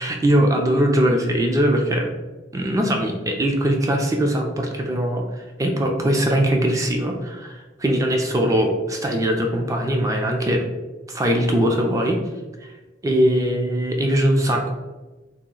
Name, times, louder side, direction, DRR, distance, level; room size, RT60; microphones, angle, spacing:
voice 1, 0.0-2.1 2.5-10.6 11.1-12.2 13.0-14.7, right 1 dB, 15° right, 2 dB, 0.3 m, -21 dB
2.9 x 2.3 x 3.7 m, 1.2 s
head